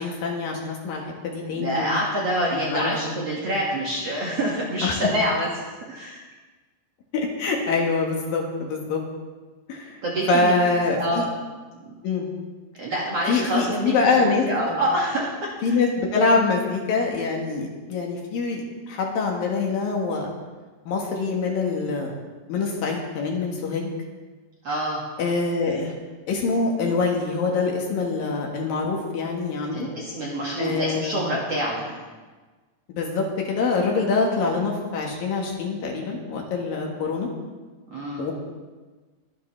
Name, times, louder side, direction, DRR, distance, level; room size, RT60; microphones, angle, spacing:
voice 1, 0.0-2.0 2.5-3.3 4.8-5.1 7.1-9.0 9.7-10.0 10.3-11.3 12.0-12.3 13.3-14.8 15.6-20.3 20.9-22.1 22.5-23.9 25.2-25.9 26.3-29.9 30.6-31.2 32.9-37.3 38.2-38.3, left 4 dB, 65° left, 0 dB, 2.9 m, -25 dB
voice 2, 1.5-5.5 5.9-6.2 10.0-10.7 11.0-11.3 12.8-15.3 15.6-15.8 24.6-25.0 29.7-32.0 37.9-38.3, right 1 dB, 50° right, -5 dB, 2.1 m, -26 dB
23.0 x 10.0 x 3.3 m, 1.3 s
omnidirectional pair, 4.9 m